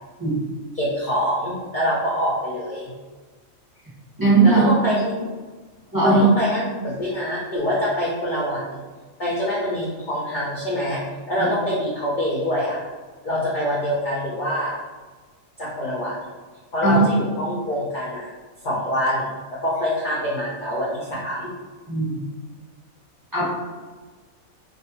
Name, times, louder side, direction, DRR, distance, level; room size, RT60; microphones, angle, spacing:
voice 1, 0.7-2.9 4.4-5.3 6.0-8.8 9.2-11.0 11.3-12.8 13.2-14.7 15.6-16.2 16.7-18.3 18.6-19.3 19.6-21.5, equal, 60° left, -7 dB, 0.5 m, -25 dB
voice 2, 4.2-4.6 5.9-6.2 11.4-11.5 16.8-17.1 21.9-22.3 23.3-23.5, right 3 dB, 15° right, -10 dB, 0.9 m, -18 dB
2.5 x 2.3 x 2.7 m, 1.4 s
omnidirectional pair, 1.5 m